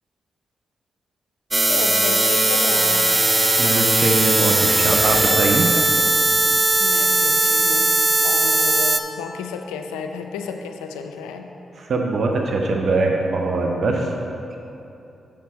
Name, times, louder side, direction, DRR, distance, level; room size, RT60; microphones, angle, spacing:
sound 1, 1.5-9.0, right 2 dB, 25° right, 0.5 m, -18 dB
voice 1, 1.7-3.1 6.8-11.5, left 6 dB, 90° left, 5 dB, 0.4 m, -32 dB
voice 2, 3.6-5.7 11.8-14.1, right 3 dB, 60° right, 1 dB, 0.7 m, -22 dB
7.2 x 6.0 x 4.2 m, 2.8 s
hypercardioid pair, 45°, 0 cm